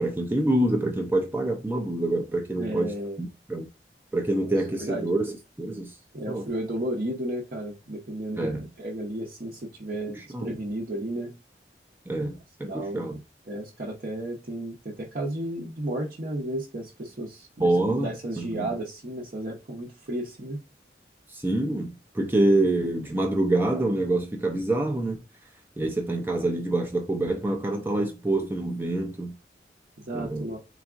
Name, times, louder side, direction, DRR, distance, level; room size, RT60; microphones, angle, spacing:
voice 1, 0.0-2.9 3.2-3.7 4.1-5.9 6.3-6.5 8.4-8.7 10.1-10.6 12.1-13.2 17.6-18.1 18.4-18.7 21.3-25.2 25.8-29.3 30.1-30.4, right 2 dB, 10° right, 0.4 m, -26 dB
voice 2, 2.6-3.2 4.4-5.0 6.1-8.5 8.8-11.3 12.6-13.1 13.5-20.6 30.1-30.6, right 1 dB, 50° right, 0.7 m, -33 dB
4.0 x 3.5 x 2.4 m
head